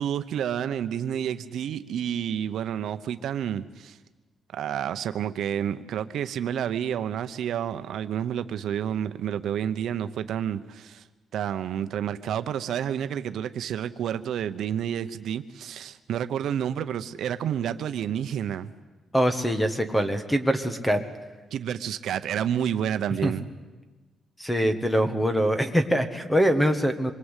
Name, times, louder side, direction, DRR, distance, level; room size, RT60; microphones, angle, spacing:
voice 1, 0.0-4.0 4.5-11.0 11.3-18.7 21.5-23.4, right 9 dB, 65° right, 0.9 m, -29 dB
voice 2, 19.1-21.0 23.2-23.3 24.4-27.1, equal, 5° left, 1.5 m, -23 dB
26.0 x 23.0 x 8.3 m
cardioid pair, 180°, 0 cm